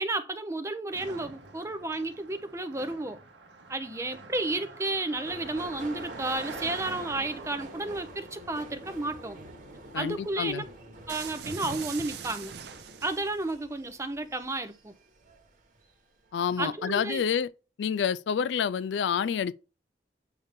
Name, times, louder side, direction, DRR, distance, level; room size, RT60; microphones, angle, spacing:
voice 1, 0.0-3.2 3.7-9.4 9.9-10.7 11.1-12.5 13.0-14.9 16.6-17.2, right 2 dB, 15° right, 0.6 m, -32 dB
Car passing by, 0.9-10.5, right 3 dB, 85° right, 0.9 m, -46 dB
Subway metro underground, 5.2-16.0 16.3-17.0 17.3-17.4, right 1 dB, 50° right, 1.3 m, -47 dB
voice 2, 9.9-10.6 16.3-17.5 17.8-19.5, left 7 dB, 85° left, 0.3 m, -28 dB
sound 1, 11.1-13.5, right 6 dB, 65° right, 0.6 m, -41 dB
8.0 x 2.7 x 5.2 m
head